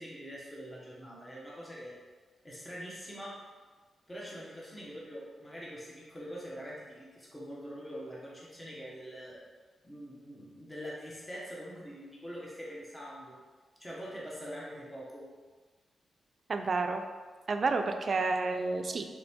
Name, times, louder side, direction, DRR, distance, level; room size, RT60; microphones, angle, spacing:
voice 1, 0.0-2.0 2.4-3.4 4.1-9.4 9.8-13.4 13.8-15.3, equal, 15° left, -5 dB, 1.3 m, -44 dB
voice 2, 16.5-17.0 17.5-19.0, right 3 dB, 55° right, 6 dB, 0.4 m, -30 dB
3.5 x 3.1 x 4.3 m, 1.4 s
supercardioid pair, 50°, 0 cm